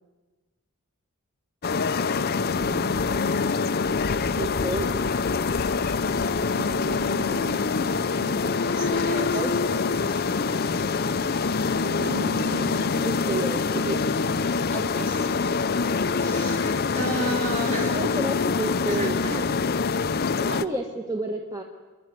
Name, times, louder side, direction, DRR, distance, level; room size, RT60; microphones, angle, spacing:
sound 1, 1.6-20.6, left 4 dB, 45° left, 0.6 m, -25 dB
voice 1, 2.3-3.0 8.6-9.6 14.7-15.3 15.9-18.0 18.9-19.5 20.5-20.6, right 2 dB, 35° right, 1 dB, 3.2 m, -35 dB
voice 2, 4.4-4.9 9.1-9.5 13.0-14.0 17.8-19.2 20.4-21.6, right 2 dB, 15° right, 2 dB, 1.4 m, -30 dB
sound 2, 4.8-14.0, right 2 dB, 85° right, 1.1 m, -41 dB
26.5 x 11.0 x 9.6 m, 1.3 s
head